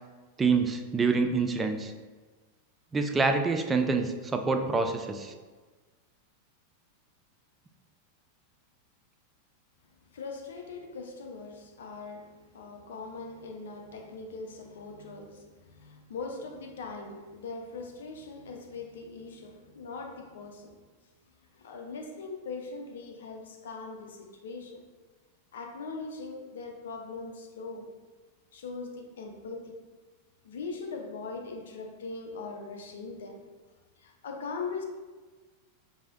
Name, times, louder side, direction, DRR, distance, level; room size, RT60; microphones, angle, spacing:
voice 1, 0.4-1.9 2.9-5.3, right 4 dB, 15° right, 5 dB, 0.3 m, -26 dB
voice 2, 10.1-20.8 21.5-24.8 25.5-27.9 28.5-29.8 30.4-33.4 34.0-34.8, left 4 dB, 60° left, 3 dB, 0.5 m, -41 dB
4.8 x 2.6 x 2.3 m, 1.3 s
figure-of-eight pair, 90°, 0 cm